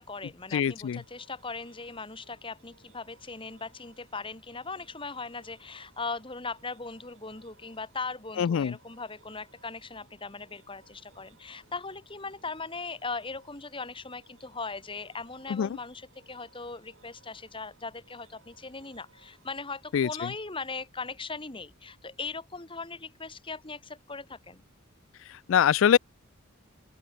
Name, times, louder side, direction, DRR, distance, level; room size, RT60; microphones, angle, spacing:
voice 1, 0.0-24.6, left 4 dB, 25° left, 2.3 m, -39 dB
voice 2, 0.5-1.0 8.4-8.7 15.5-15.8 19.9-20.1 25.5-26.0, left 8 dB, 70° left, 0.3 m, -23 dB
sound 1, 0.7-20.3, right 4 dB, 70° right, 6.4 m, -63 dB
open air
head